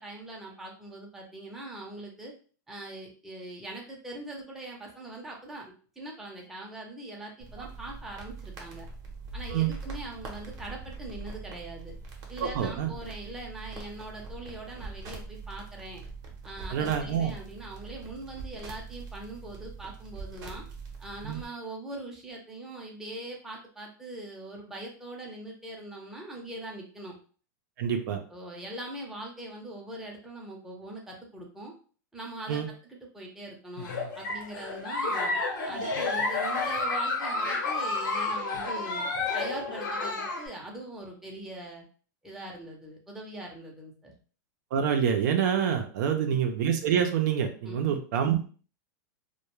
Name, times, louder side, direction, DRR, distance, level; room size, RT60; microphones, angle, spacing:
voice 1, 0.0-2.3 2.7-8.9 9.3-11.9 12.3-16.0 16.4-20.6 21.0-27.2 28.3-31.7 32.1-32.6 32.9-35.4 35.6-39.1 39.3-41.8 42.2-44.1 47.6-48.0, right 1 dB, 5° right, -2 dB, 0.6 m, -42 dB
sound 1, 7.4-21.4, right 4 dB, 35° right, 0.8 m, -43 dB
voice 2, 12.4-12.9 16.7-17.3 21.2-21.4 27.8-28.2 32.5-32.7 44.7-48.4, right 8 dB, 65° right, 4 dB, 0.5 m, -26 dB
Giggle, 33.8-40.5, left 3 dB, 80° left, 0.9 m, -30 dB
2.2 x 2.2 x 3.0 m, 0.40 s
supercardioid pair, 135°, 10 cm